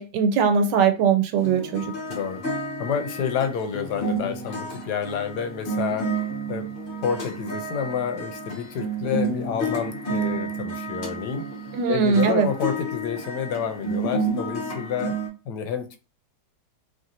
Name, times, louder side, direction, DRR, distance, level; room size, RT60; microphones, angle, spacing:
voice 1, 0.0-1.8 11.7-12.5, right 6 dB, 85° right, 1.3 m, -20 dB
sound 1, 1.4-15.3, right 2 dB, 40° left, 1.0 m, -30 dB
voice 2, 2.1-2.4 2.8-6.1 6.5-6.7 7.0-11.5 11.9-15.2 15.5-16.0, left 7 dB, 80° left, 1.2 m, -29 dB
3.1 x 2.7 x 2.6 m
omnidirectional pair, 1.8 m